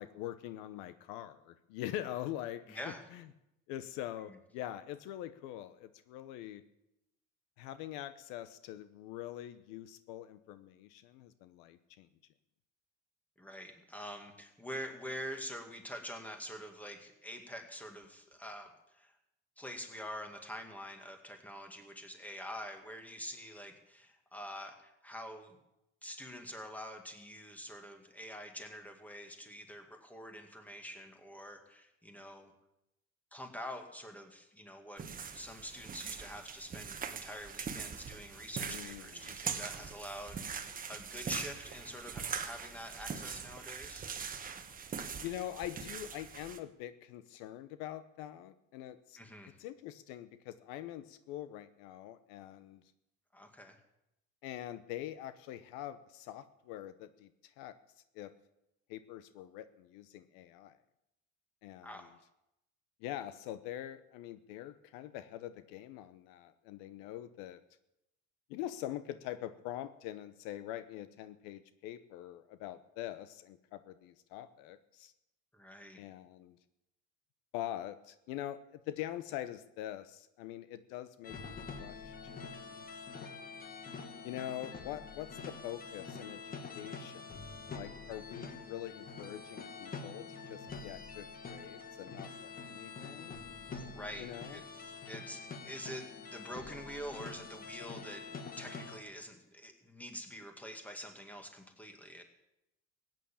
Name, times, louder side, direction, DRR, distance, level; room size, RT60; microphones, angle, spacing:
voice 1, 0.0-3.2 3.7-6.6 7.6-12.1 38.7-39.3 45.2-49.2 49.6-52.8 54.4-57.7 58.1-58.3 58.9-60.8 61.6-62.1 63.0-67.6 68.5-75.1 76.0-76.6 77.5-82.4 82.7-82.8 84.2-87.3 87.7-93.4 94.2-94.6, left 12 dB, 80° left, 13 dB, 0.9 m, -44 dB
voice 2, 2.7-3.0 4.3-4.4 13.4-19.2 19.6-25.6 26.0-32.5 33.3-35.0 35.3-44.1 49.2-49.6 53.3-53.8 61.8-62.1 75.5-76.0 93.7-98.2 98.6-102.2, equal, 5° left, 4 dB, 2.1 m, -46 dB
sound 1, 35.0-46.6, right 6 dB, 25° right, 1.2 m, -42 dB
sound 2, 81.2-99.0, left 4 dB, 25° left, 1.5 m, -46 dB
16.0 x 9.3 x 7.3 m, 0.87 s
supercardioid pair, 115°, 33 cm